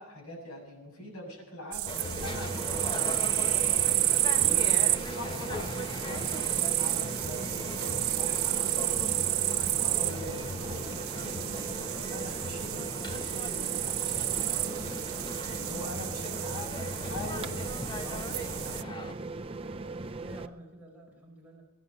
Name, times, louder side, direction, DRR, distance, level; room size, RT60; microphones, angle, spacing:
voice 1, 0.0-3.7 4.3-11.6 11.9-15.1 15.6-17.6 18.0-18.8, left 1 dB, 80° left, -1 dB, 7.3 m, -44 dB
sound 1, 1.7-18.8, right 16 dB, 65° right, 0.6 m, -31 dB
sound 2, 1.9-19.1, left 2 dB, 20° left, 0.9 m, -40 dB
sound 3, 2.2-20.5, right 3 dB, 25° right, 0.6 m, -39 dB
voice 2, 20.1-21.6, right 1 dB, 10° right, -3 dB, 4.3 m, -51 dB
22.0 x 10.5 x 5.4 m, 1.1 s
head